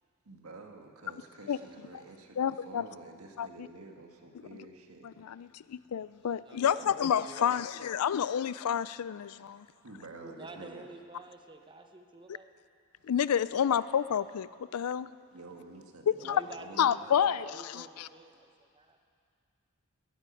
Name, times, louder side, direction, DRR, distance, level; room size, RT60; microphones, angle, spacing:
voice 1, 0.2-5.4 9.8-10.9 15.3-17.0, right 2 dB, 75° right, 3 dB, 1.6 m, -49 dB
voice 2, 2.4-2.9 3.4-3.5 5.0-9.7 13.1-15.1 16.1-16.4 16.8-18.1, left 8 dB, 90° left, 17 dB, 0.4 m, -29 dB
voice 3, 6.2-7.7 10.2-12.5 16.2-19.0, right 2 dB, 20° right, 5 dB, 0.9 m, -50 dB
13.0 x 11.0 x 9.1 m, 2.3 s
head